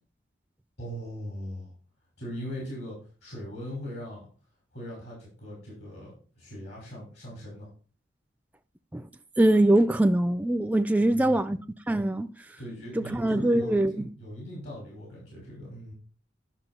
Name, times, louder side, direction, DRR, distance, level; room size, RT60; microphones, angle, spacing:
voice 1, 0.8-1.7 2.2-3.0 3.2-4.3 4.7-7.7 11.0-11.5 12.6-15.9, equal, 75° left, 5.7 m, -40 dB
voice 2, 9.4-11.6 11.9-12.3 13.0-14.1, right 1 dB, 10° right, 0.4 m, -23 dB
12.0 x 5.8 x 4.5 m
head